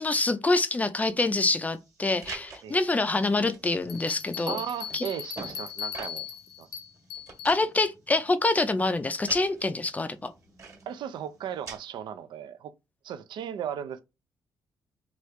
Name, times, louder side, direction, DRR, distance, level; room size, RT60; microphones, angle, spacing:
voice 1, 0.0-4.6 4.9-5.0 7.4-10.3, left 2 dB, 20° left, 0.4 m, -26 dB
sound 1, 1.7-11.8, right 4 dB, 40° right, 1.4 m, -47 dB
Bell, 3.9-7.6, left 8 dB, 80° left, 0.8 m, -38 dB
voice 2, 4.5-6.2 6.6-6.7 10.9-12.7 13.0-14.0, right 9 dB, 75° right, 0.4 m, -36 dB
3.0 x 2.4 x 3.2 m
cardioid pair, 90°, 8 cm